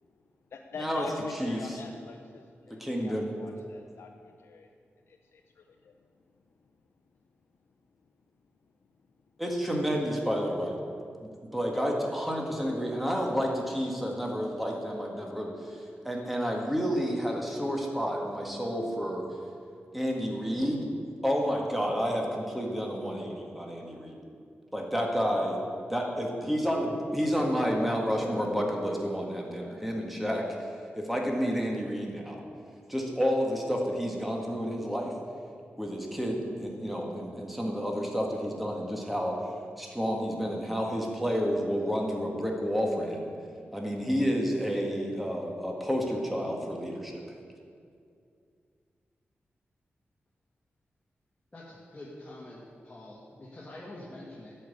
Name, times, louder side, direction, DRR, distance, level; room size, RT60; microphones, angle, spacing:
voice 1, 0.5-4.1 4.4-4.7 5.1-5.6, left 5 dB, 80° left, 3 dB, 0.6 m, -43 dB
voice 2, 1.3-1.8 2.7-3.3 9.4-10.8 11.2-19.3 19.9-20.9 21.2-24.2 24.7-25.6 25.9-30.5 31.0-32.4 32.9-35.1 35.8-39.4 39.8-43.3 43.7-47.2, equal, ahead, -1 dB, 1.8 m, -30 dB
voice 3, 51.5-54.6, left 1 dB, 25° left, -6 dB, 1.9 m, -46 dB
12.0 x 5.6 x 8.4 m, 2.3 s
wide cardioid pair, 95°, 4 cm